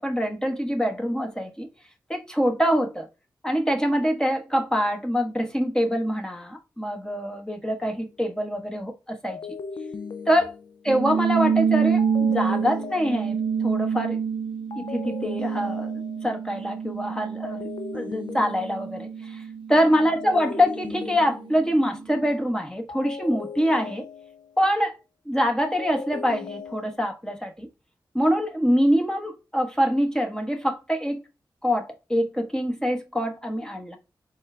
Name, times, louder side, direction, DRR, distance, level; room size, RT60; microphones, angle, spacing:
voice 1, 0.0-1.7 2.1-3.1 3.4-9.4 10.3-10.5 10.8-14.2 14.7-15.9 16.2-19.4 19.7-24.1 24.6-25.0 25.2-27.7 28.1-31.2 31.6-34.0, equal, 10° left, 1.4 m, -25 dB
sound 1, 7.9-8.2 9.3-11.0 12.0-13.7 14.7-16.4 17.4-19.1 20.2-21.9 22.9-24.6 25.6-27.0, left 5 dB, 65° left, 0.5 m, -38 dB
sound 2, 10.9-21.7, right 6 dB, 90° right, 0.4 m, -28 dB
4.2 x 3.7 x 3.4 m
cardioid pair, 40°, 8 cm